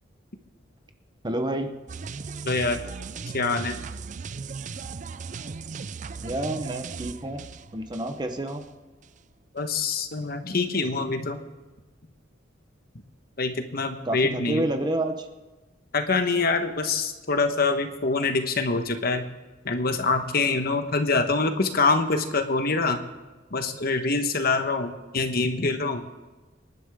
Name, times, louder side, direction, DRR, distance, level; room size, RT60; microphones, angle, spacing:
voice 1, 1.2-1.8 6.2-8.6 14.0-15.3, right 1 dB, 25° right, 6 dB, 1.0 m, -29 dB
sound 1, 1.9-8.7 9.0-9.2, right 5 dB, 40° right, 0.4 m, -37 dB
voice 2, 2.4-2.8 3.3-3.8 9.5-11.4 13.4-14.7 15.9-19.3 19.6-23.0 23.5-26.3, left 3 dB, 55° left, 6 dB, 1.3 m, -25 dB
26.5 x 11.0 x 3.7 m, 1.2 s
head